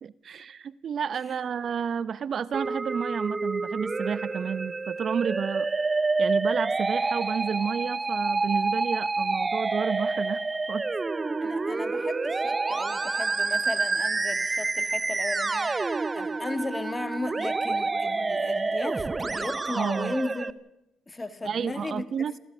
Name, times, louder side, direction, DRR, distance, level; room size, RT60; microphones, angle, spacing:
voice 1, 0.0-5.7 6.2-10.4 10.7-10.8 19.7-20.1 21.4-22.4, right 7 dB, 55° right, 17 dB, 0.7 m, -31 dB
Musical instrument, 2.5-20.5, right 3 dB, 25° right, 0.8 m, -28 dB
voice 2, 11.4-15.8 16.1-20.6 21.1-22.3, left 2 dB, 20° left, 10 dB, 2.1 m, -35 dB
28.5 x 15.5 x 6.2 m, 0.90 s
cardioid pair, 90°, 0 cm